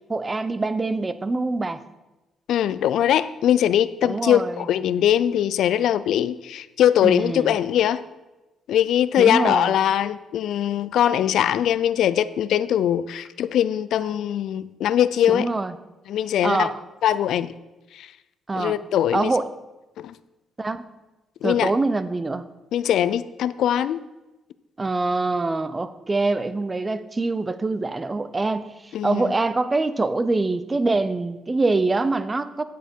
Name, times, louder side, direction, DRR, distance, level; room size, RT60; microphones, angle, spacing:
voice 1, 0.1-1.8 4.0-4.7 7.0-7.6 9.2-9.8 15.3-15.7 16.4-16.8 18.5-18.8 19.1-19.5 20.6-20.9 21.4-22.5 24.8-32.6, right 3 dB, 25° right, 14 dB, 0.6 m, -24 dB
voice 2, 2.5-8.0 8.7-15.5 16.1-16.7 17.0-17.5 17.9-18.1 18.5-19.3 20.0-20.2 21.4-21.7 22.7-24.0 28.9-29.3, left 10 dB, 75° left, 16 dB, 0.4 m, -21 dB
9.2 x 8.0 x 4.5 m, 1.1 s
cardioid pair, 90°, 0 cm